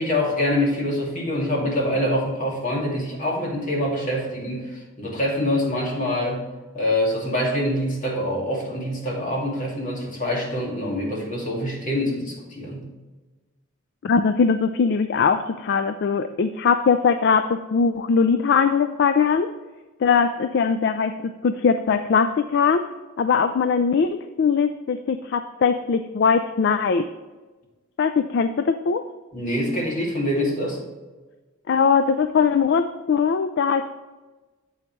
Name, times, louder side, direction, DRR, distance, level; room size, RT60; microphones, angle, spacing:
voice 1, 0.0-6.4 6.7-12.8 29.3-30.8, left 1 dB, 40° left, -2 dB, 2.2 m, -25 dB
voice 2, 14.0-19.5 20.0-22.8 23.2-27.1 28.0-29.0 31.7-34.0, left 5 dB, 55° left, 10 dB, 0.4 m, -21 dB
8.5 x 7.9 x 3.1 m, 1.2 s
head